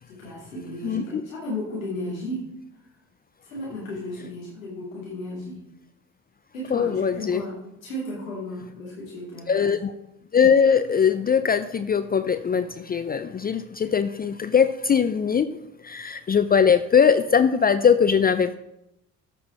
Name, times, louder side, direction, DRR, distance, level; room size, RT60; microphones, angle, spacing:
voice 1, 0.0-2.5 3.4-5.6 6.5-7.6 7.8-9.7, left 1 dB, 90° left, -6 dB, 2.5 m, -34 dB
voice 2, 0.8-1.2 6.7-7.4 9.5-9.9 10.3-15.5 15.8-18.6, left 7 dB, 25° left, 11 dB, 0.5 m, -21 dB
13.5 x 5.6 x 4.2 m, 0.84 s
hypercardioid pair, 50°, 39 cm